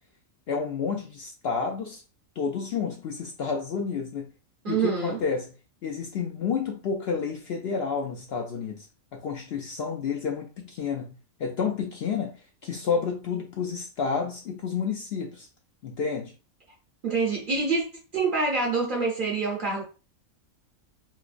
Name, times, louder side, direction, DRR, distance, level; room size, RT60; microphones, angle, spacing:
voice 1, 0.5-2.0 2.4-4.3 4.7-5.5 5.8-8.9 9.1-15.5 15.8-16.3, left 6 dB, 65° left, 0.6 m, -30 dB
voice 2, 4.6-5.2 17.0-17.8 18.1-19.8, right 4 dB, 50° right, 0.7 m, -26 dB
3.1 x 2.9 x 2.5 m
omnidirectional pair, 1.4 m